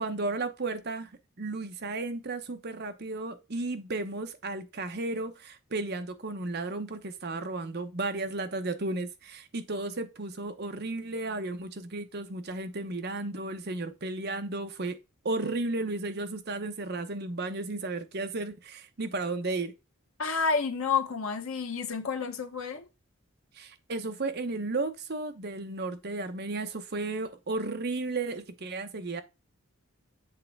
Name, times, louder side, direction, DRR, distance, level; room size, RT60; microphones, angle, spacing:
voice 1, 0.0-15.0 15.2-19.7 23.6-29.2, right 2 dB, 50° right, 0.9 m, -34 dB
voice 2, 20.2-22.9, left 5 dB, 85° left, 1.0 m, -30 dB
7.6 x 3.4 x 4.6 m
head